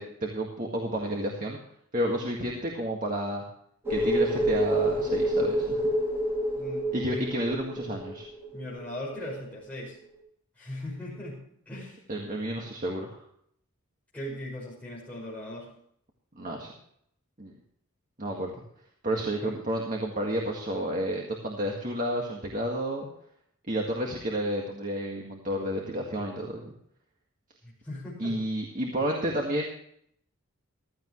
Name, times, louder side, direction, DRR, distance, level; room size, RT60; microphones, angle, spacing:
voice 1, 0.0-1.6 1.9-3.4 3.9-5.8 6.9-8.3 12.1-13.2 16.4-16.7 17.4-17.5 18.2-18.5 19.0-23.1 23.7-26.7 28.2-29.7, right 1 dB, 35° right, -1 dB, 1.9 m, -31 dB
sound 1, 3.8-9.1 9.3-9.4, right 1 dB, 10° right, 3.0 m, -28 dB
voice 2, 6.5-7.3 8.5-10.0 10.6-12.0 14.1-15.7 19.4-19.5 27.6-28.4 29.1-29.2, left 1 dB, 5° left, -7 dB, 5.9 m, -39 dB
15.5 x 13.5 x 3.2 m, 0.68 s
head